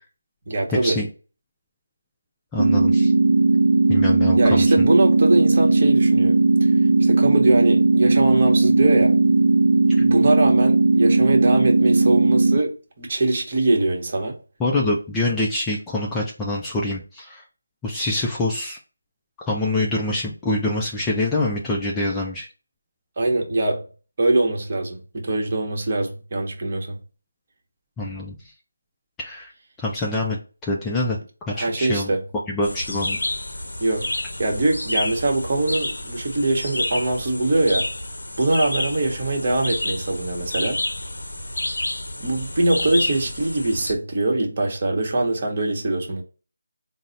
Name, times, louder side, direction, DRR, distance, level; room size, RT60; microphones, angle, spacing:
voice 1, 0.5-1.0 4.3-6.7 7.0-9.2 9.9-14.3 23.2-23.8 24.2-27.0 31.6-32.2 33.8-34.1 34.4-37.9 38.4-40.8 42.2-46.2, right 2 dB, 40° right, 1.0 m, -22 dB
voice 2, 2.5-3.1 3.9-4.9 14.6-17.4 17.8-18.8 19.5-22.5 28.0-28.5 29.2-29.5 29.8-31.2 31.5-32.2 32.5-33.2, left 2 dB, 10° left, 0.4 m, -25 dB
sound 1, 2.6-12.6, right 3 dB, 65° right, 0.4 m, -17 dB
sound 2, 32.6-43.9, left 1 dB, 85° left, 0.6 m, -29 dB
3.8 x 2.0 x 4.0 m
figure-of-eight pair, 170°, 0 cm